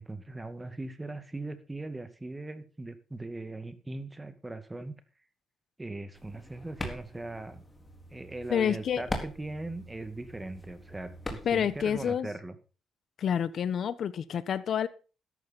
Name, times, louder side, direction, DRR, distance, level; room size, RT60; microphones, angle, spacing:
voice 1, 0.0-5.0 5.8-7.6 8.1-12.6, right 2 dB, 15° right, 2.2 m, -39 dB
sound 1, 6.1-12.1, left 1 dB, 20° left, 4.1 m, -42 dB
voice 2, 8.5-9.0 11.4-12.3 13.2-14.9, left 8 dB, 60° left, 1.2 m, -28 dB
13.0 x 11.5 x 4.3 m
cardioid pair, 90°, 0 cm